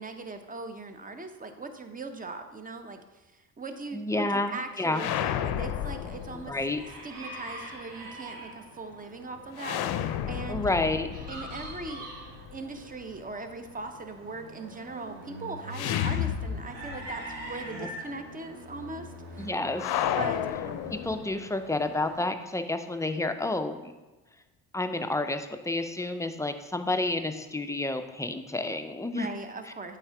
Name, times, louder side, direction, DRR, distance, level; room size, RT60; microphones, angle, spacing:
voice 1, 0.0-6.5 7.0-10.7 11.3-19.4 20.0-20.8 29.1-30.0, right 3 dB, 20° right, 7 dB, 0.7 m, -40 dB
voice 2, 3.9-5.0 6.3-6.8 10.5-11.1 19.4-20.1 20.9-23.9 24.7-29.3, left 2 dB, 10° left, 7 dB, 0.3 m, -30 dB
sound 1, 4.9-6.9 9.6-12.6 15.7-17.1 17.4-17.5 19.8-21.5, left 10 dB, 65° left, 0.5 m, -32 dB
sound 2, 5.5-22.2, right 1 dB, 85° right, 1.5 m, -44 dB
8.7 x 3.6 x 3.4 m, 1.2 s
supercardioid pair, 70°, 41 cm